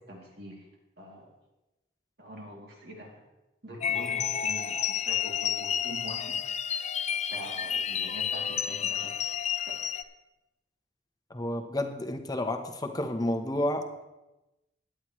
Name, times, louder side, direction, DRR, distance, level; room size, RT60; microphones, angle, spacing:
voice 1, 0.1-0.7 1.0-1.3 2.2-3.2 3.6-6.4 7.3-9.1 9.7-9.8, right 1 dB, 60° right, -1 dB, 2.7 m, -44 dB
sound 1, 3.8-10.0, left 8 dB, 40° left, 0.5 m, -30 dB
voice 2, 11.3-14.0, left 1 dB, 20° left, 5 dB, 0.9 m, -31 dB
16.0 x 10.0 x 3.1 m, 1.0 s
head